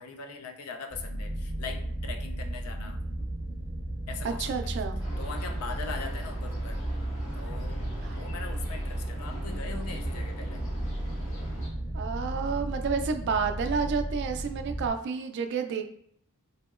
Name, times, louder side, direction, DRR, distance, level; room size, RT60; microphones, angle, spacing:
voice 1, 0.0-3.0 4.1-4.8 5.2-6.8 7.3-10.6, left 4 dB, 80° left, 6 dB, 0.4 m, -41 dB
sound 1, 0.9-14.9, right 1 dB, ahead, 0.6 m, -34 dB
voice 2, 4.2-5.0 8.0-8.2 11.9-15.8, right 5 dB, 55° right, 7 dB, 0.3 m, -30 dB
sound 2, 5.0-11.7, right 1 dB, 60° left, 1.5 m, -46 dB
2.8 x 2.7 x 2.4 m, 0.67 s
head